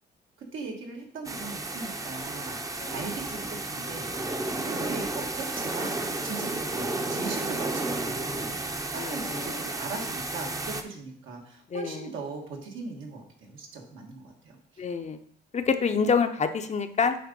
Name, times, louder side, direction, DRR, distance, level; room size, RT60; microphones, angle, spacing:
voice 1, 0.5-2.6 2.9-8.6 8.9-14.8, right 4 dB, 80° right, 1 dB, 1.6 m, -39 dB
sound 1, 1.2-10.8, right 2 dB, 15° right, 0.7 m, -32 dB
voice 2, 9.0-9.6 11.7-12.1 14.8-15.2 15.5-17.2, left 5 dB, 35° left, 8 dB, 0.6 m, -27 dB
7.8 x 3.7 x 5.3 m, 0.64 s
cardioid pair, 90°, 20 cm